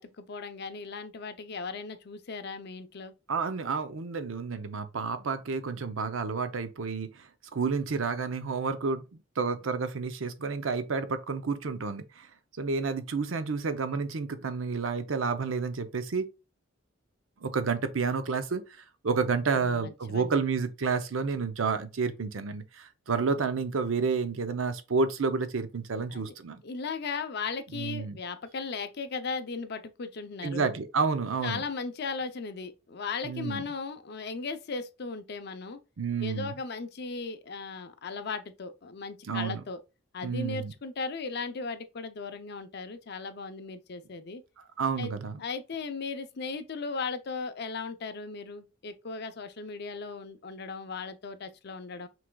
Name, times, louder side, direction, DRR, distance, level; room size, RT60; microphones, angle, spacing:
voice 1, 0.0-3.1 19.5-20.4 26.1-26.3 26.6-30.7 31.4-35.8 36.2-39.8 40.1-44.4 45.0-45.1 45.4-52.1, left 4 dB, 55° left, 0.6 m, -37 dB
voice 2, 3.3-9.0 9.4-12.3 12.6-16.3 17.4-18.6 19.0-26.6 27.7-28.2 30.4-31.6 33.2-33.6 36.0-36.5 39.2-39.6 40.2-40.7 44.8-45.4, right 4 dB, 80° right, 0.6 m, -30 dB
6.0 x 3.3 x 2.3 m
head